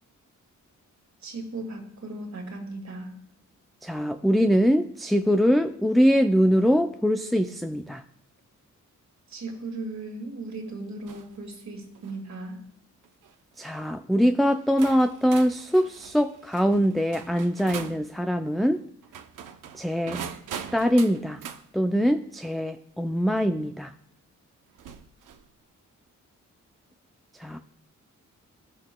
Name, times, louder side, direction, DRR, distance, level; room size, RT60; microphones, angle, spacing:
voice 1, 1.2-3.2 9.3-12.6, right 2 dB, 60° right, 3 dB, 1.9 m, -37 dB
voice 2, 3.8-8.0 13.6-18.8 19.7-20.2 20.7-21.4 21.7-23.9 27.4-27.6, equal, ahead, 7 dB, 0.3 m, -23 dB
sound 1, 11.1-11.4 11.9-12.2 13.0-13.3 14.2-14.3 14.8-18.0 19.0-21.6 23.4-23.5 24.8-25.5, right 8 dB, 85° right, 0.7 m, -41 dB
13.5 x 6.4 x 2.2 m, 0.72 s
cardioid pair, 80°, 31 cm